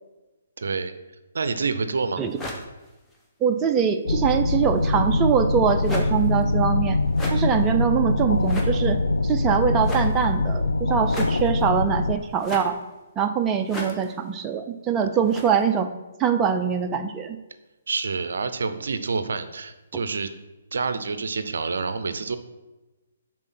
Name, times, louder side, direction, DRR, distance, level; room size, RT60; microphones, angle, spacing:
voice 1, 0.6-0.9 1.3-2.2 17.9-20.3 20.7-22.4, right 4 dB, 70° right, 11 dB, 0.5 m, -27 dB
sound 1, 2.3-3.2 4.7-5.2 5.8-6.5 7.0-7.6 8.3-8.9 9.8-10.3 11.0-11.6 12.3-13.0 13.6-14.4 15.2-15.6, left 1 dB, 10° left, 1.0 m, -36 dB
voice 2, 3.4-7.0 7.3-12.8 13.2-15.9 16.2-17.4, right 7 dB, 20° right, 5 dB, 0.5 m, -23 dB
sound 2, 4.1-12.2, left 2 dB, 85° left, 0.4 m, -23 dB
6.1 x 4.2 x 5.8 m, 1.1 s
figure-of-eight pair, 135°, 0 cm